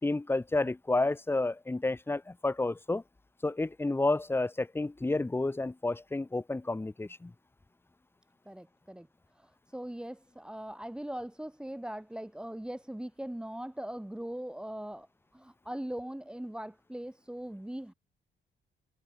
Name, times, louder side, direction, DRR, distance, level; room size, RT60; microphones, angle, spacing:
voice 1, 0.0-3.0 3.4-7.3, left 2 dB, 10° left, 1.5 m, -30 dB
voice 2, 8.5-9.1 9.3-15.1 15.3-17.9, right 1 dB, 5° right, 2.9 m, -40 dB
cardioid pair, 125°, 19 cm